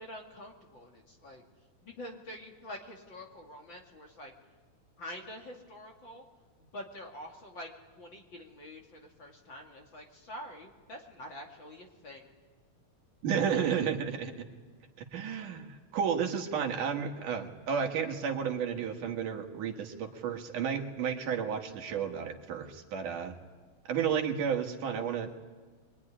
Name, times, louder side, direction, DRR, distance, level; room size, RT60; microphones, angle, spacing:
voice 1, 0.0-1.4 1.8-4.3 5.0-6.2 6.6-7.7 8.0-12.3, left 1 dB, 40° left, 1 dB, 2.7 m, -46 dB
voice 2, 13.2-14.3 15.0-23.4 23.9-25.3, right 7 dB, 75° right, 3 dB, 3.2 m, -32 dB
24.0 x 23.5 x 9.9 m, 1.4 s
omnidirectional pair, 3.7 m